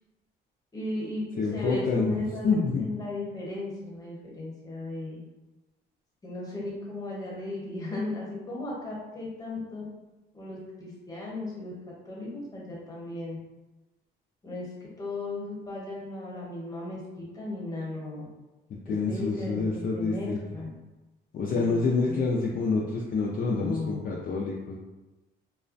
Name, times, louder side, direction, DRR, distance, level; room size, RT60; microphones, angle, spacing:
voice 1, 0.7-2.5 2.8-5.2 6.2-9.8 10.3-11.7 12.0-13.4 14.4-14.7 15.0-17.0 17.3-18.3 18.8-20.7 21.4-22.2 23.6-24.1, left 2 dB, 15° left, -5 dB, 1.0 m, -36 dB
voice 2, 1.4-2.2 2.4-2.9 18.7-20.4 21.3-24.8, left 4 dB, 45° left, -3 dB, 0.4 m, -27 dB
2.3 x 2.1 x 2.5 m, 1.1 s
cardioid pair, 90°, 20 cm